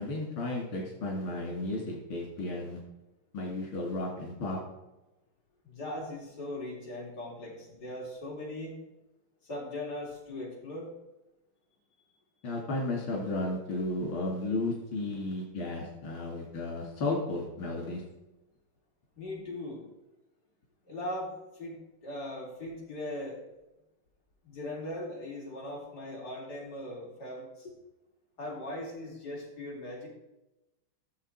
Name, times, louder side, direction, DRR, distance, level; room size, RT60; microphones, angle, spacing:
voice 1, 0.0-2.8 3.3-4.6 12.4-18.0, left 2 dB, 90° left, -2 dB, 3.3 m, -33 dB
voice 2, 5.6-8.8 9.4-10.9 19.2-19.8 20.9-23.5 24.4-27.7 28.4-30.1, left 1 dB, 50° left, -4 dB, 4.1 m, -39 dB
14.5 x 7.3 x 4.4 m, 0.97 s
omnidirectional pair, 2.2 m